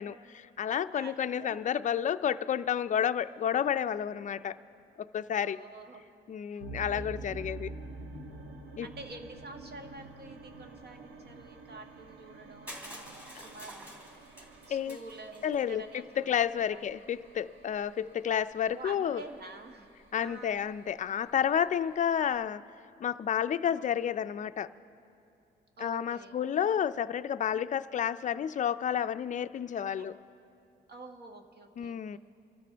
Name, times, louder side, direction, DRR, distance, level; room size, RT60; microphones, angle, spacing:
voice 1, 0.0-4.6 5.1-5.6 6.3-7.7 8.8-8.9 14.7-15.0 15.4-19.2 20.1-22.6 23.0-24.7 25.8-30.1 31.8-32.2, left 9 dB, 40° left, 12 dB, 0.4 m, -30 dB
voice 2, 0.9-1.8 5.4-6.0 6.5-7.3 8.8-13.9 14.7-16.8 18.6-19.9 20.2-20.7 23.5-23.9 25.8-26.4 29.7-30.1 30.9-32.2, right 2 dB, 55° right, 4 dB, 1.5 m, -48 dB
sound 1, 6.6-22.3, right 3 dB, 70° right, 1.3 m, -48 dB
Crushing, 12.7-15.6, equal, 5° right, 3.9 m, -48 dB
26.5 x 13.5 x 3.4 m, 2.7 s
cardioid pair, 90°, 20 cm